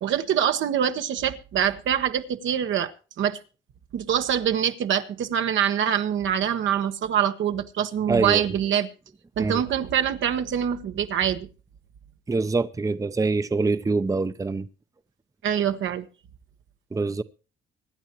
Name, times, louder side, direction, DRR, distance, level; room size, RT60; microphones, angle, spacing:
voice 1, 0.0-3.4 3.9-8.9 9.4-11.5 15.4-16.1, right 9 dB, 75° right, 1.3 m, -25 dB
voice 2, 8.1-8.5 9.4-9.6 12.3-14.7 16.9-17.2, right 3 dB, 15° right, 0.7 m, -25 dB
25.0 x 9.9 x 3.1 m
cardioid pair, 90°, 20 cm